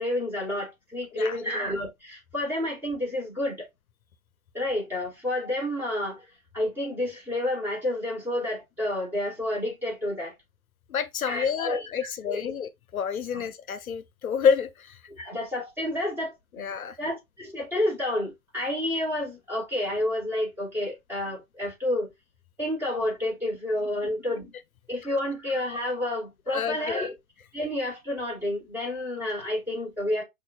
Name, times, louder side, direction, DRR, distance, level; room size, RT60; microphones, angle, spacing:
voice 1, 0.0-3.7 4.5-6.3 6.5-10.3 11.3-12.5 13.3-13.5 15.1-16.7 17.0-22.1 22.6-24.5 24.9-27.1 27.5-30.2, left 1 dB, 5° right, 1.1 m, -30 dB
voice 2, 10.9-15.0 16.6-17.0 26.5-27.1, left 7 dB, 70° left, 0.6 m, -28 dB
5.4 x 2.6 x 2.4 m
figure-of-eight pair, 130°, 44 cm